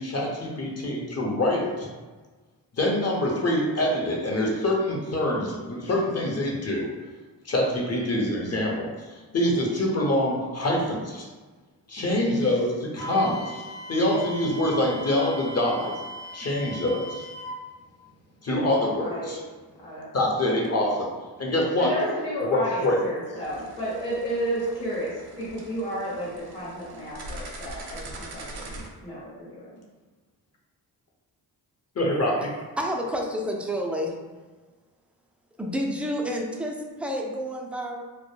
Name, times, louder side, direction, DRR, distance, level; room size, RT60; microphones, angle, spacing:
voice 1, 0.0-1.9 2.7-6.9 7.4-11.3 11.9-13.6 13.9-15.9 16.3-17.2 18.4-19.4 20.1-21.1 21.4-21.9 22.5-23.0 32.0-32.5, left 1 dB, 35° left, -1 dB, 0.7 m, -25 dB
Wind instrument woodwind instrument, 12.9-17.6, equal, 60° left, 1.1 m, -39 dB
voice 2, 18.9-19.3 19.8-20.1 21.8-29.7, equal, 85° left, -8 dB, 1.1 m, -32 dB
sound 1, 23.4-28.9, right 2 dB, 60° right, 0.6 m, -42 dB
voice 3, 32.8-34.1 35.6-38.0, equal, 5° right, 0 dB, 0.3 m, -29 dB
2.1 x 2.1 x 3.1 m, 1.3 s
supercardioid pair, 50°, 42 cm